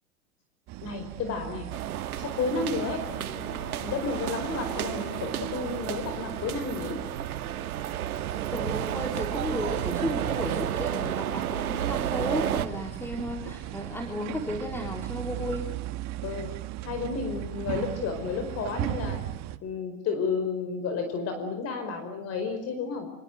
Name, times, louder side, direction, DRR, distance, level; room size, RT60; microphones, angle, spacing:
sound 1, 0.7-19.6, right 14 dB, 40° right, 1.9 m, -38 dB
voice 1, 0.8-1.7 2.2-3.1 3.8-7.0 16.2-19.3 19.6-23.1, left 4 dB, 35° left, 7 dB, 5.0 m, -32 dB
sound 2, 1.7-12.7, right 11 dB, 85° right, 2.3 m, -32 dB
Wind instrument woodwind instrument, 2.3-6.5, left 6 dB, 80° left, 7.7 m, -46 dB
voice 2, 8.5-15.7, left 1 dB, 5° left, 2 dB, 3.7 m, -33 dB
26.5 x 26.0 x 7.9 m, 0.72 s
hypercardioid pair, 125°, 42 cm